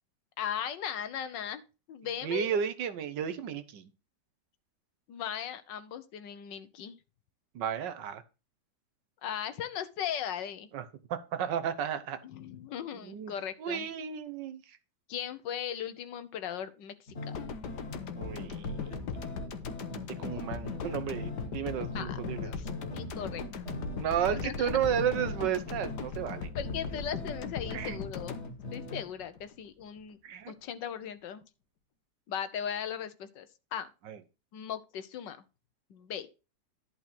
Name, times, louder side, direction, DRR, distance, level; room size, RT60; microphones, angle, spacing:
voice 1, 0.4-2.6 5.1-7.0 9.2-10.7 12.2-13.9 15.1-17.3 21.9-23.6 24.4-24.8 26.5-28.5 28.7-30.2 30.5-31.4 32.3-33.9 34.5-35.4 35.9-36.3, left 9 dB, 85° left, 12 dB, 1.6 m, -38 dB
voice 2, 2.2-3.9 7.5-8.2 10.7-10.8 11.1-12.2 13.0-13.3 13.6-14.8 18.2-18.9 20.1-22.5 24.0-26.5 27.7-28.0 30.2-30.5 34.0-34.2, right 8 dB, 80° right, 12 dB, 1.6 m, -33 dB
sound 1, 17.1-29.0, left 2 dB, 40° left, 2.0 m, -42 dB
sound 2, 17.3-29.5 29.8-30.0, left 5 dB, 70° left, 1.6 m, -39 dB
11.0 x 4.4 x 6.0 m, 0.31 s
omnidirectional pair, 1.9 m